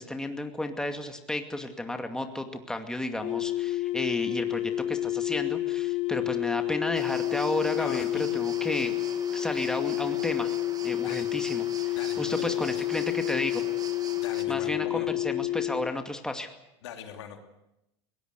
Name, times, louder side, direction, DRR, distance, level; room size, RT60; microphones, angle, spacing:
voice 1, 0.0-8.9 9.3-10.5 10.8-13.6 14.5-16.5, left 1 dB, 5° left, 6 dB, 2.3 m, -33 dB
sound 1, 3.2-15.9, left 15 dB, 50° left, 0.9 m, -29 dB
sound 2, 6.9-14.4, right 5 dB, 25° right, 2.1 m, -44 dB
voice 2, 7.8-8.2 11.0-11.3 11.9-12.8 14.2-15.1 16.8-17.4, left 9 dB, 85° left, 5 dB, 2.9 m, -41 dB
21.5 x 18.0 x 8.2 m, 0.87 s
hypercardioid pair, 95°, 14 cm